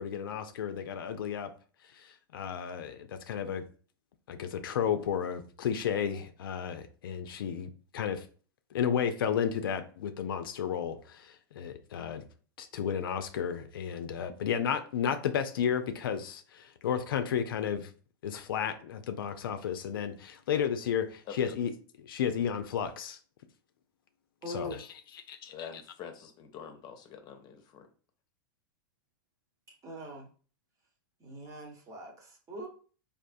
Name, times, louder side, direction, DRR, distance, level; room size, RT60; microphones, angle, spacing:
voice 1, 0.0-1.5 1.9-3.6 4.3-8.2 8.7-12.2 12.6-17.9 18.2-21.7 22.0-23.2 24.5-24.8 25.3-25.7, left 8 dB, 75° left, 0.4 m, -33 dB
voice 2, 24.4-24.8 29.7-30.3 31.2-32.7, equal, 30° right, 1.0 m, -42 dB
voice 3, 25.5-27.9, left 8 dB, 35° left, 0.6 m, -45 dB
3.5 x 2.5 x 2.5 m
hypercardioid pair, 110°, 12 cm